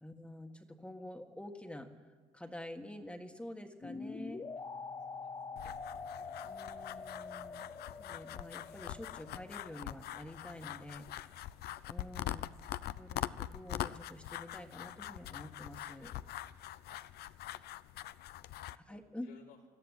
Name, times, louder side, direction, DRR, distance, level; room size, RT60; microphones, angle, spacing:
voice 1, 0.0-1.9 2.3-4.4 6.4-7.7 8.0-11.1 11.9-12.4 12.9-16.1 18.9-19.3, left 1 dB, 5° left, 4 dB, 1.5 m, -48 dB
sound 1, 3.8-10.7, left 4 dB, 25° left, 0.8 m, -46 dB
voice 2, 5.1-5.8 11.2-11.3 16.3-16.5 18.3-19.7, left 8 dB, 90° left, -2 dB, 4.4 m, -64 dB
sound 2, 5.6-18.8, left 13 dB, 70° left, 0.6 m, -43 dB
21.0 x 13.5 x 9.9 m, 1.5 s
cardioid pair, 110°, 17 cm